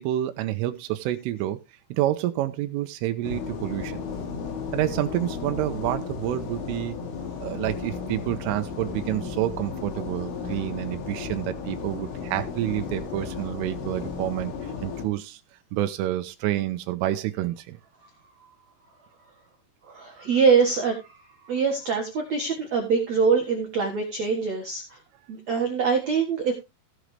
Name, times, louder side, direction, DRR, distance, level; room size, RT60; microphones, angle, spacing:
voice 1, 0.0-1.6 1.9-4.1 4.7-7.0 7.4-15.4 15.7-17.8, right 14 dB, 90° right, 3.4 m, -28 dB
sound 1, 3.2-15.1, left 5 dB, 80° left, 4.9 m, -34 dB
voice 2, 19.9-21.2 21.4-24.8 25.3-26.5, right 5 dB, 55° right, 2.0 m, -24 dB
17.0 x 6.3 x 3.3 m
omnidirectional pair, 5.6 m